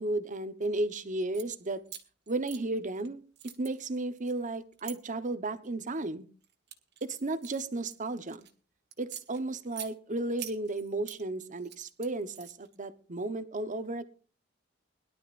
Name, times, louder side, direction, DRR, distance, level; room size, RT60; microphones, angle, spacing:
voice 1, 0.0-1.8 2.3-3.2 3.6-6.3 7.0-8.5 9.0-14.0, right 2 dB, 40° right, 11 dB, 1.0 m, -34 dB
sound 1, 1.2-1.5 1.9-3.1 3.4-5.0 5.6-6.0 6.4-8.5 8.9-9.9 10.4-11.2 11.6-12.8, right 10 dB, 60° right, 1.6 m, -46 dB
21.5 x 11.5 x 2.5 m, 0.37 s
head